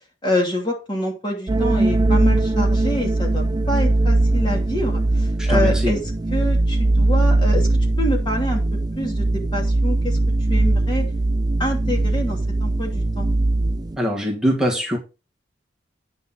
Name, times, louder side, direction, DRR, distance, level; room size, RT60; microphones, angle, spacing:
voice 1, 0.2-6.0 6.3-7.7 8.0-8.6 9.0-10.2 10.5-11.1 11.6-13.3, left 1 dB, 25° left, 1 dB, 2.7 m, -26 dB
sound 1, 1.5-14.0, right 2 dB, 25° right, 0.4 m, -20 dB
voice 2, 5.4-6.0 14.0-15.0, equal, 5° right, -2 dB, 2.4 m, -22 dB
9.7 x 6.9 x 4.0 m, 0.28 s
head